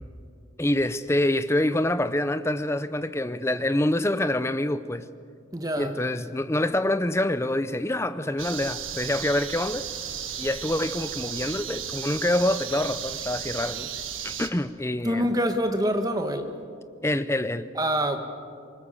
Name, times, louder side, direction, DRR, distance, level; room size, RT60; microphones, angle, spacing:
voice 1, 0.6-5.1 5.8-9.9 10.4-13.9 14.2-15.2 17.0-17.7, left 1 dB, 15° left, 0.6 m, -26 dB
voice 2, 5.5-5.9 15.0-16.5 17.8-18.2, equal, 20° right, 1.3 m, -25 dB
sound 1, 8.4-14.5, right 9 dB, 85° right, 1.4 m, -34 dB
24.0 x 21.0 x 7.1 m
head